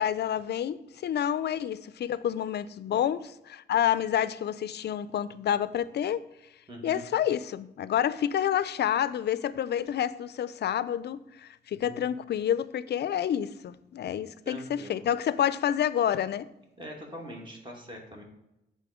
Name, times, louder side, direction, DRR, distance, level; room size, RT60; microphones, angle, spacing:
voice 1, 0.0-6.2 6.8-16.5, left 10 dB, 65° left, 0.4 m, -28 dB
voice 2, 6.7-7.0 11.9-12.0 14.5-15.0 16.8-18.2, equal, 25° right, 2.0 m, -43 dB
7.6 x 3.8 x 4.9 m
cardioid pair, 65°, 19 cm